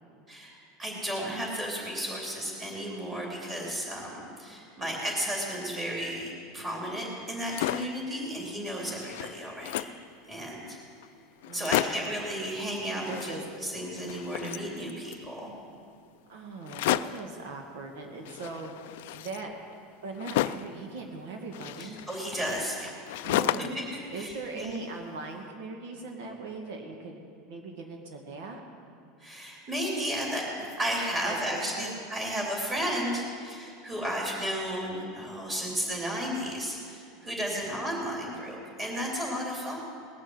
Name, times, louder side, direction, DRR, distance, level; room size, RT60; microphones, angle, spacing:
voice 1, 0.3-9.9 10.3-10.8 11.5-15.5 21.8-22.9 24.1-24.8 29.2-39.8, equal, 15° right, -2 dB, 3.0 m, -33 dB
sound 1, 7.3-8.0 8.5-8.6 8.8-10.1 10.7-10.8 11.0-11.1 11.4-12.2 12.9-13.7 14.0-15.3 16.6-17.3 18.3-20.8 21.5-23.9 24.2-25.1, left 14 dB, 75° left, 0.3 m, -33 dB
voice 2, 11.4-11.9 13.1-13.4 16.3-19.5 20.0-22.0 23.2-23.8 24.1-27.2 27.5-28.6 31.2-31.9 37.5-37.7, right 3 dB, 75° right, 2 dB, 1.8 m, -40 dB
19.5 x 6.5 x 7.8 m, 2.5 s
supercardioid pair, 160°, 0 cm